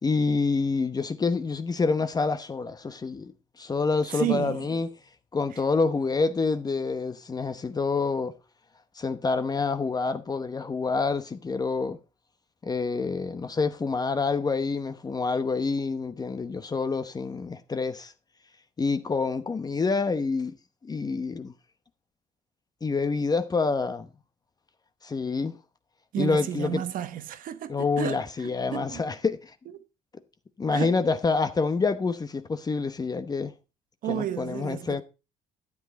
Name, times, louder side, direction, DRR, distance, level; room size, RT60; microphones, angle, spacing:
voice 1, 0.0-4.9 5.3-8.3 9.0-12.0 12.6-18.1 18.8-20.6 20.8-21.5 22.8-24.1 25.0-25.5 26.2-26.8 27.7-29.5 30.6-33.5 34.0-35.0, left 4 dB, 25° left, 0.9 m, -27 dB
voice 2, 4.1-4.7 26.1-29.0 30.7-31.0 34.0-35.0, right 11 dB, 65° right, 1.2 m, -32 dB
12.0 x 8.2 x 4.1 m
cardioid pair, 100°, 15 cm